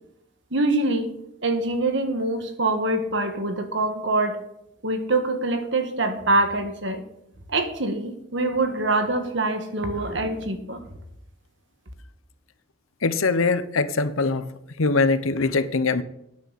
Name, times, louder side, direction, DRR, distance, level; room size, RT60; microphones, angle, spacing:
voice 1, 0.5-1.1 1.4-4.4 4.8-7.0 7.5-10.9, right 2 dB, 60° right, 7 dB, 1.6 m, -24 dB
voice 2, 13.0-14.5 14.8-16.0, left 3 dB, 85° left, 13 dB, 0.8 m, -22 dB
12.5 x 9.7 x 4.1 m, 0.79 s
head